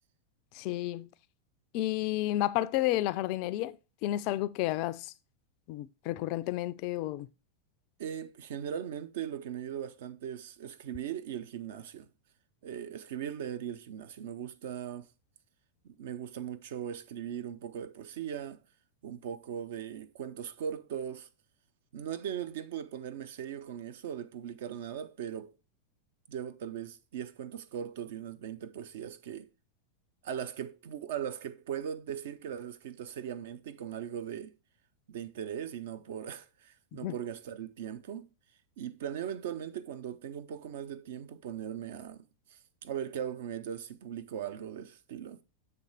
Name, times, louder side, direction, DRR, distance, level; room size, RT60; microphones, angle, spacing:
voice 1, 0.5-1.1 1.7-3.8 4.0-5.1 5.7-7.3 37.0-37.1, left 15 dB, 45° left, 0.3 m, -31 dB
voice 2, 8.0-12.1 12.6-15.1 15.8-18.6 19.0-21.3 21.9-25.5 26.3-29.5 30.2-34.5 35.1-38.3 38.8-42.2 42.5-45.4, right 9 dB, 55° right, 0.5 m, -39 dB
7.0 x 3.3 x 4.6 m
figure-of-eight pair, 90°, 0 cm